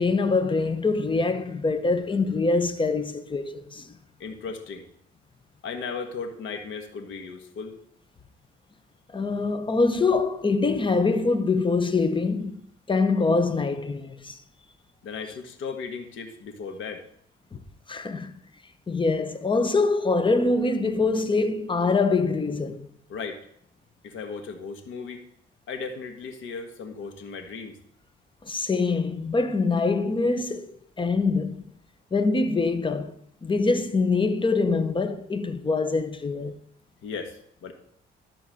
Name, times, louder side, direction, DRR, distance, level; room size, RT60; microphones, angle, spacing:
voice 1, 0.0-3.9 9.1-12.6 12.9-14.4 17.5-17.6 17.9-18.3 18.9-22.9 28.4-31.6 32.1-33.1 33.4-36.6, left 3 dB, 25° left, 1.0 m, -24 dB
voice 2, 4.2-4.9 5.6-7.8 15.0-17.1 23.1-23.4 24.0-25.2 25.7-27.8 37.0-37.7, left 5 dB, 75° left, 1.5 m, -36 dB
12.0 x 4.6 x 7.7 m
cardioid pair, 90°, 20 cm